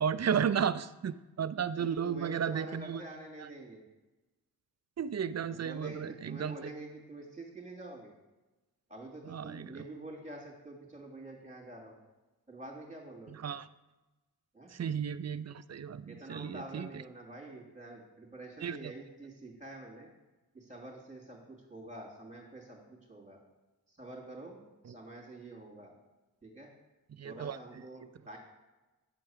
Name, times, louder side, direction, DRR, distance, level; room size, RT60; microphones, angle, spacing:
voice 1, 0.0-3.0 3.4-3.5 5.0-6.6 9.2-9.8 13.4-13.7 14.7-17.0 18.6-18.9 24.9-25.0 27.2-27.6, right 7 dB, 45° right, 15 dB, 0.5 m, -34 dB
voice 2, 1.7-3.8 5.5-8.1 8.9-11.9 12.5-13.4 14.5-14.7 16.1-20.1 20.5-23.4 23.9-24.6 24.9-25.9 26.4-26.7 27.2-28.4, right 2 dB, 20° right, -2 dB, 3.0 m, -47 dB
8.9 x 4.5 x 7.4 m, 1.1 s
cardioid pair, 55°, 36 cm